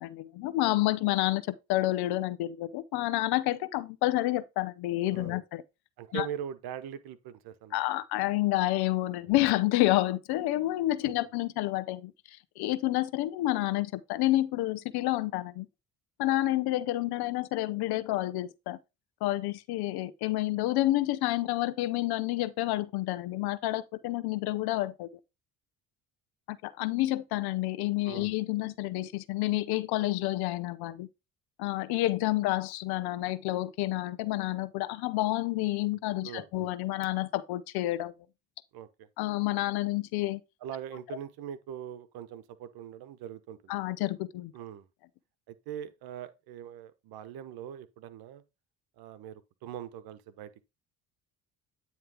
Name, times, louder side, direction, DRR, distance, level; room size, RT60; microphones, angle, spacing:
voice 1, 0.0-5.6 6.1-6.3 7.7-12.1 12.6-15.7 16.2-18.8 19.2-25.1 26.5-31.1 31.6-38.1 39.2-40.4 43.7-44.5, left 16 dB, 70° left, 0.8 m, -29 dB
voice 2, 6.0-7.8 11.0-11.1 28.1-28.3 36.2-36.7 38.7-39.1 40.6-43.7 44.5-44.9 45.5-48.4 49.0-50.7, right 10 dB, 70° right, 1.0 m, -42 dB
9.3 x 3.2 x 4.8 m
supercardioid pair, 65°, 39 cm